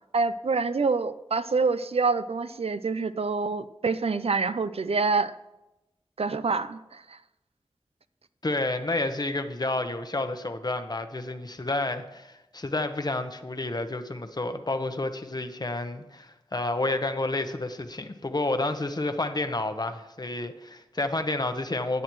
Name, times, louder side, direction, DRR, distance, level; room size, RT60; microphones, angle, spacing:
voice 1, 0.1-5.3 6.2-7.2, right 4 dB, 75° right, 13 dB, 0.5 m, -26 dB
voice 2, 8.4-22.0, left 2 dB, 40° left, 8 dB, 1.0 m, -30 dB
17.5 x 9.9 x 3.1 m, 0.97 s
wide cardioid pair, 60°, 10 cm